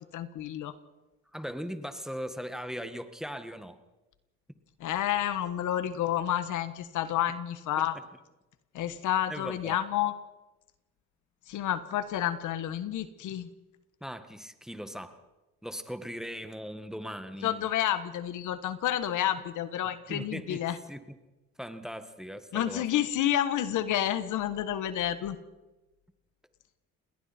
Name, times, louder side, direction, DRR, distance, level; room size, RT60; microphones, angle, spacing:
voice 1, 0.1-0.7 4.8-8.0 8.7-10.1 11.5-13.5 17.4-20.8 22.5-25.4, left 11 dB, 80° left, 12 dB, 1.4 m, -30 dB
voice 2, 1.3-3.8 7.8-7.9 9.3-9.8 14.0-15.2 15.6-17.7 20.1-21.2 21.6-22.9, equal, ahead, 9 dB, 1.8 m, -39 dB
28.5 x 20.5 x 4.4 m, 1.1 s
cardioid pair, 90°, 30 cm